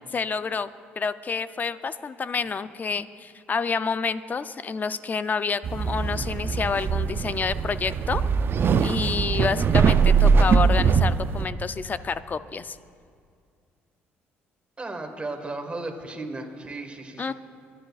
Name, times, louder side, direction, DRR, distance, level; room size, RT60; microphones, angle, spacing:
voice 1, 0.1-0.7 1.0-8.2 8.8-12.8 17.2-17.3, left 5 dB, 35° left, 13 dB, 0.5 m, -28 dB
sound 1, 5.6-11.4, right 5 dB, 50° right, 0.5 m, -21 dB
voice 2, 14.8-17.3, right 2 dB, 25° right, 4 dB, 1.7 m, -35 dB
25.0 x 10.0 x 2.4 m, 2.3 s
supercardioid pair, 75°, 5 cm